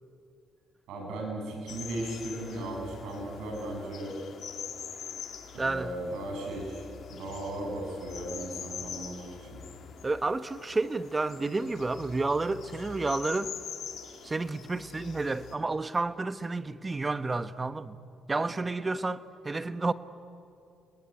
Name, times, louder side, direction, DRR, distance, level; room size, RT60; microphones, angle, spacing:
voice 1, 0.9-4.2 5.5-9.6, right 1 dB, 85° right, 7.8 m, -37 dB
sound 1, 1.7-15.5, left 7 dB, 65° left, 2.9 m, -44 dB
voice 2, 5.6-6.0 10.0-13.5 14.2-18.0 18.3-19.9, right 3 dB, 25° right, 1.1 m, -30 dB
29.5 x 20.0 x 9.8 m
cardioid pair, 90°, 0 cm